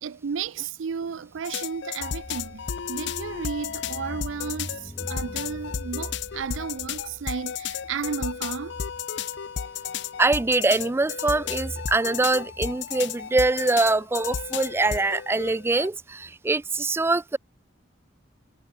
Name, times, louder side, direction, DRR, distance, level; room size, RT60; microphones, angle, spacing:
voice 1, 0.0-8.8, right 6 dB, 85° right, 0.5 m, -33 dB
sound 1, 1.4-15.9, left 8 dB, 65° left, 0.5 m, -33 dB
Car / Engine, 2.0-9.0, left 1 dB, 20° left, 0.7 m, -42 dB
voice 2, 10.2-17.4, right 3 dB, 15° right, 0.3 m, -23 dB
head